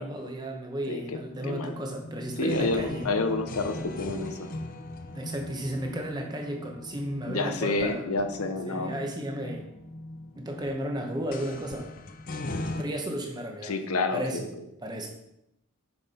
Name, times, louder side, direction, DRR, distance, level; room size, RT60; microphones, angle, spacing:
voice 1, 0.0-3.1 5.1-8.0 8.7-9.7 10.4-11.9 12.8-13.7 14.1-14.5 14.8-15.1, right 1 dB, 20° right, 2 dB, 1.0 m, -33 dB
voice 2, 0.9-1.2 1.4-1.8 2.4-4.5 7.3-8.9 13.6-14.4, left 3 dB, 85° left, 7 dB, 0.8 m, -29 dB
sound 1, 1.1-12.8, left 2 dB, 40° left, 0.6 m, -40 dB
6.8 x 5.9 x 4.3 m, 0.84 s
head